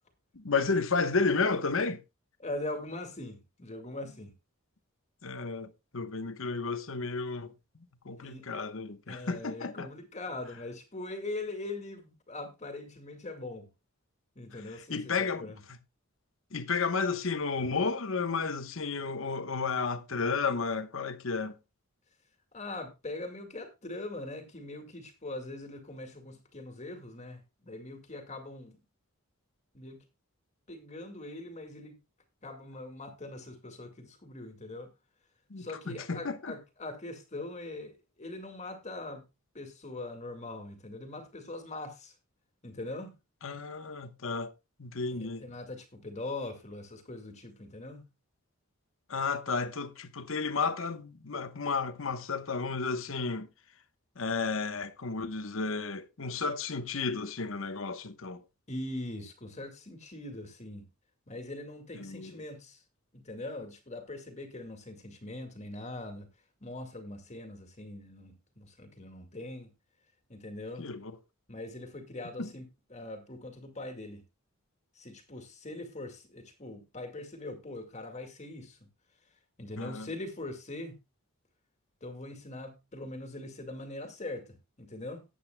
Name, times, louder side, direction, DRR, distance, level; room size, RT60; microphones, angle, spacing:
voice 1, 0.3-2.0 5.2-7.5 8.0-9.9 14.9-15.5 16.5-21.6 35.5-36.6 43.4-44.5 44.8-45.5 49.1-53.5 54.2-58.4 62.0-62.4 70.8-71.1 72.4-72.5 79.8-80.1, left 4 dB, 65° left, 1.1 m, -32 dB
voice 2, 2.4-4.3 8.2-8.5 9.1-13.7 14.4-15.6 22.5-28.8 29.7-30.0 30.7-32.0 32.4-34.9 35.6-39.2 39.5-42.1 42.6-43.2 45.1-48.0 58.7-60.9 61.3-62.8 63.1-66.3 66.6-69.7 70.3-70.9 71.5-74.2 75.0-78.8 79.6-81.0 82.0-85.2, left 2 dB, 30° left, 2.1 m, -42 dB
18.5 x 8.1 x 2.2 m
head